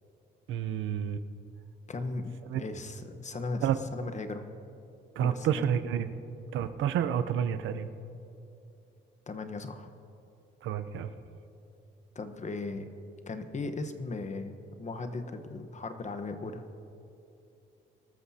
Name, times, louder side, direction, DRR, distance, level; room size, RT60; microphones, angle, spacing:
voice 1, 0.5-1.2 2.5-2.6 3.6-3.8 5.2-6.1 6.5-7.9 10.6-11.1, right 9 dB, 80° right, 11 dB, 0.7 m, -29 dB
voice 2, 1.9-3.7 3.9-4.4 5.2-5.6 9.3-9.9 12.1-12.9 13.3-16.6, left 3 dB, 35° left, 8 dB, 1.2 m, -37 dB
24.0 x 13.5 x 2.9 m, 2.8 s
cardioid pair, 90°, 20 cm